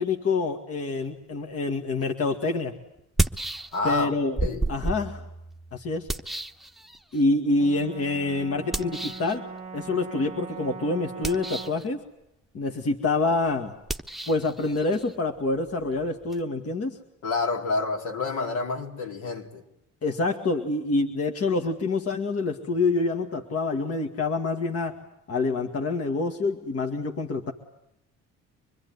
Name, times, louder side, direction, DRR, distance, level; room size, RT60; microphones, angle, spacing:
voice 1, 0.0-2.7 3.8-4.4 4.7-5.2 5.7-6.1 7.1-9.5 9.7-12.0 12.5-13.7 14.3-17.0 20.0-25.0 25.3-27.5, left 3 dB, 50° left, 2.1 m, -26 dB
sound 1, 2.0-2.1 3.0-4.0 4.4-7.2 8.7-9.3 11.1-11.9 13.8-16.4, right 2 dB, ahead, 1.0 m, -32 dB
voice 2, 3.7-4.1 4.4-4.6 17.2-19.6, left 3 dB, 75° left, 4.2 m, -28 dB
Brass instrument, 7.6-11.9, right 5 dB, 20° right, 1.5 m, -40 dB
25.5 x 21.5 x 9.6 m
cardioid pair, 90°, 31 cm